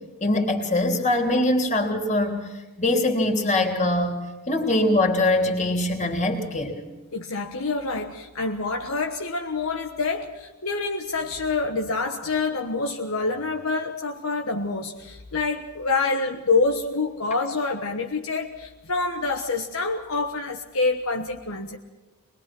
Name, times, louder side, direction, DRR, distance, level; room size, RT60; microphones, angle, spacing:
voice 1, 0.2-2.4 2.8-4.2 4.5-6.7, left 1 dB, 35° left, 3 dB, 3.4 m, -22 dB
voice 2, 7.1-21.8, left 3 dB, 65° left, 3 dB, 1.3 m, -27 dB
24.0 x 21.0 x 6.1 m, 1.3 s
head